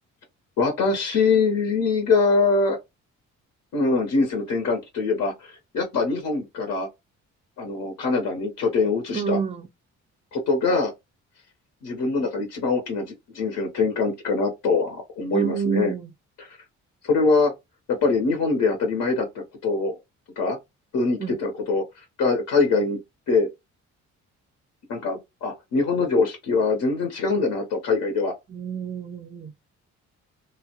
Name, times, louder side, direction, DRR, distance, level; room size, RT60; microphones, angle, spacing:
voice 1, 0.6-2.8 3.7-6.9 7.6-9.4 10.3-10.9 11.8-13.1 13.3-15.9 16.4-16.6 17.0-17.5 17.9-19.9 20.4-20.6 20.9-23.0 23.3-23.5 24.9-28.3, left 4 dB, 80° left, 0.8 m, -23 dB
voice 2, 9.1-9.7 15.3-16.1 21.2-21.4 28.5-29.5, right 6 dB, 20° right, 0.4 m, -28 dB
2.8 x 2.0 x 2.8 m
cardioid pair, 90°, 30 cm